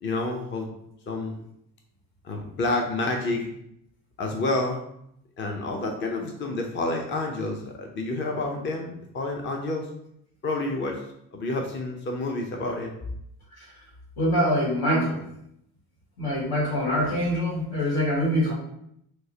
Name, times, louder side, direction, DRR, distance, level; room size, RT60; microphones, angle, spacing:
voice 1, 0.0-0.7 1.1-1.4 2.2-3.5 4.2-4.8 5.4-9.9 10.4-11.0 11.3-12.9, left 2 dB, 30° left, 2 dB, 0.6 m, -29 dB
voice 2, 14.2-15.2 16.2-18.5, equal, 80° left, -3 dB, 1.5 m, -24 dB
4.5 x 2.1 x 2.8 m, 0.75 s
supercardioid pair, 70°, 38 cm